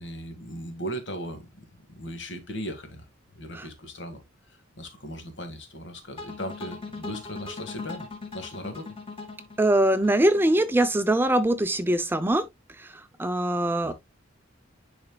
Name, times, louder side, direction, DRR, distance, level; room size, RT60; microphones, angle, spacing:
voice 1, 0.0-3.0 3.3-4.2 4.5-8.1 8.3-8.9 13.8-13.9, equal, 60° left, 1.9 m, -38 dB
sound 1, 6.2-11.3, left 3 dB, 25° left, 2.0 m, -40 dB
voice 2, 9.6-12.5 12.8-13.9, right 1 dB, 10° right, 0.5 m, -23 dB
10.5 x 4.4 x 2.2 m
head